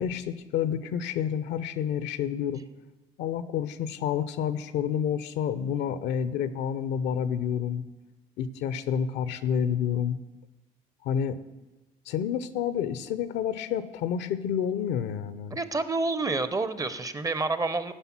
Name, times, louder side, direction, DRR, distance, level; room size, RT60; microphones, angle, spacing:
voice 1, 0.0-2.6 3.2-7.8 8.4-10.2 11.0-11.4 12.1-15.6, left 8 dB, 65° left, 14 dB, 0.6 m, -29 dB
voice 2, 15.5-17.9, right 3 dB, 20° right, 13 dB, 0.6 m, -28 dB
9.9 x 5.4 x 6.0 m, 1.1 s
hypercardioid pair, 65°, 19 cm